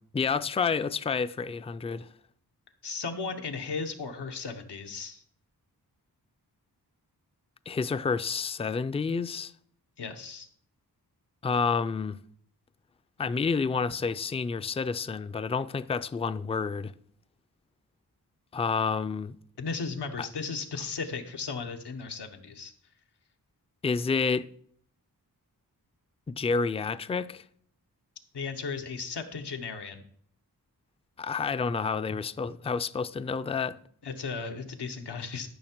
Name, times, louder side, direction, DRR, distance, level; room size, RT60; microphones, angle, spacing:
voice 1, 0.1-2.1 7.7-9.5 11.4-12.2 13.2-16.9 18.5-19.4 20.2-20.3 23.8-24.5 26.3-27.4 31.2-33.8, left 5 dB, 15° left, 0.3 m, -29 dB
voice 2, 2.8-5.2 10.0-10.5 19.6-22.7 28.3-30.0 34.0-35.5, left 4 dB, 90° left, 1.1 m, -36 dB
13.0 x 5.8 x 4.5 m
wide cardioid pair, 95°, 39 cm